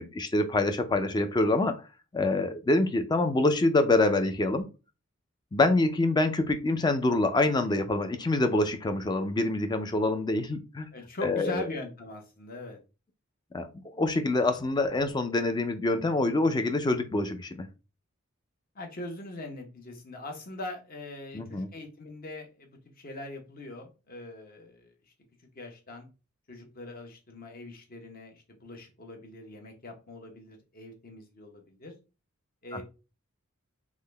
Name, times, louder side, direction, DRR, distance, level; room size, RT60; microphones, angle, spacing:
voice 1, 0.0-1.8 2.1-4.7 5.5-10.9 11.2-11.6 13.5-13.7 13.9-17.7 21.3-21.7 32.7-32.8, left 2 dB, 20° left, 8 dB, 0.4 m, -26 dB
voice 2, 10.9-12.8 18.7-24.9 25.5-26.1 26.5-31.9 32.6-32.8, left 2 dB, 45° left, 3 dB, 0.9 m, -41 dB
3.6 x 2.1 x 3.3 m, 0.31 s
head